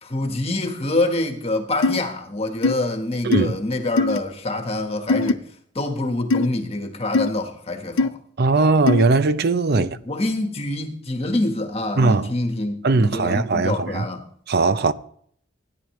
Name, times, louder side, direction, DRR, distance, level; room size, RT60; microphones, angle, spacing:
voice 1, 0.0-5.4 5.7-8.2 9.7-14.2, left 2 dB, 30° left, 1.3 m, -26 dB
sound 1, 1.8-2.0 2.6-2.7 3.3-3.4 4.0-4.2 5.1-5.3 6.3-6.5 7.1-7.3 8.0-8.1 8.9-9.0, left 3 dB, 70° left, 0.6 m, -19 dB
voice 2, 3.2-3.6 8.4-9.9 12.0-12.3 12.8-14.1 14.5-14.9, right 3 dB, 50° right, 0.6 m, -19 dB
16.5 x 10.5 x 3.1 m
head